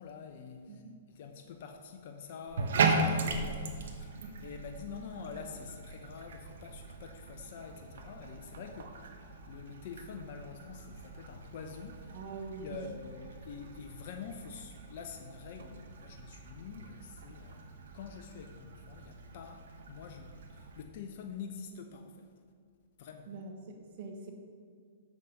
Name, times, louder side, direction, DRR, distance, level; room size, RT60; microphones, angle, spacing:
voice 1, 0.0-0.8 1.1-12.2 12.6-17.7 17.9-22.3 23.0-23.3, left 6 dB, 55° left, 5 dB, 0.7 m, -46 dB
Bathtub (filling or washing), 2.5-20.8, right 3 dB, 70° right, 1.0 m, -38 dB
voice 2, 12.1-12.8 23.3-24.3, right 4 dB, 55° right, 3 dB, 1.2 m, -44 dB
7.2 x 6.3 x 5.2 m, 2.1 s
hypercardioid pair, 120°, 0 cm